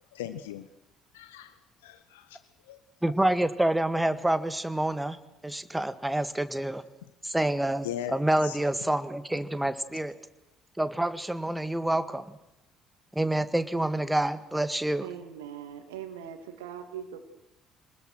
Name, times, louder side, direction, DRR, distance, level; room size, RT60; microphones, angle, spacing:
voice 1, 0.1-0.7 1.1-1.5 1.8-2.4 2.7-2.8 7.8-8.6, left 10 dB, 75° left, 11 dB, 0.9 m, -38 dB
voice 2, 3.0-5.2 5.4-6.8 7.2-10.1 10.8-12.3 13.1-15.1, right 1 dB, 5° right, 12 dB, 1.8 m, -27 dB
voice 3, 15.0-17.2, right 9 dB, 75° right, 8 dB, 2.4 m, -41 dB
27.5 x 20.0 x 6.4 m, 0.92 s
figure-of-eight pair, 50°, 0 cm